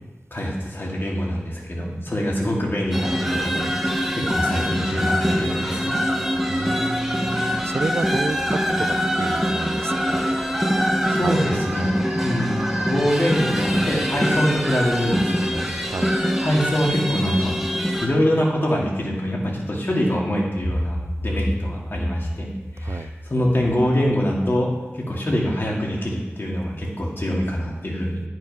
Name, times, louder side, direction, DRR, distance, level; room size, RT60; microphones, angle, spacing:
voice 1, 0.3-6.0 11.1-11.9 12.2-15.7 16.0-16.1 16.4-17.5 18.0-22.5 22.7-28.2, equal, 50° left, -2 dB, 2.3 m, -24 dB
sound 1, 2.9-18.1, equal, 5° right, 1.3 m, -24 dB
voice 2, 6.5-10.2 11.2-11.4 11.8-12.0 15.9-16.1 22.8-23.1, right 3 dB, 60° right, 12 dB, 0.4 m, -30 dB
Human voice / Cricket, 11.7-16.9, right 1 dB, 40° right, 2.4 m, -42 dB
10.0 x 6.6 x 5.5 m, 1.2 s
wide cardioid pair, 75°, 5 cm